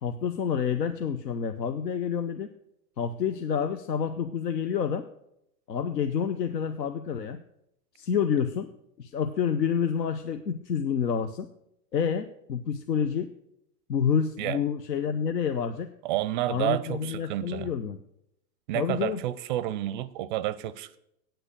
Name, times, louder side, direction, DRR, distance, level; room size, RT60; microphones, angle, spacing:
voice 1, 0.0-2.5 3.0-5.1 5.7-7.4 8.0-8.7 9.0-11.5 11.9-13.3 13.9-15.9 16.5-18.0 18.7-19.2, left 7 dB, 80° left, 9 dB, 0.8 m, -28 dB
voice 2, 16.0-17.7 18.7-21.0, right 14 dB, 30° right, 18 dB, 0.4 m, -30 dB
8.9 x 8.0 x 6.7 m, 0.77 s
hypercardioid pair, 110°, 49 cm